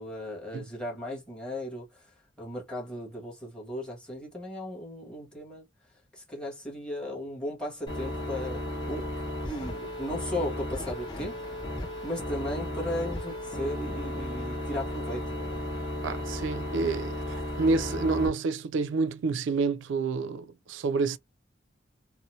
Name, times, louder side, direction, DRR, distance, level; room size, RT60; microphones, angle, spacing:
voice 1, 0.0-1.8 2.4-5.6 6.2-9.1 9.4-11.3 12.0-15.7, left 1 dB, 5° left, 1.5 m, -36 dB
sound 1, 7.9-18.3, left 1 dB, 25° left, 1.6 m, -34 dB
voice 2, 16.0-21.2, right 4 dB, 70° right, 0.4 m, -28 dB
4.1 x 2.1 x 2.6 m
head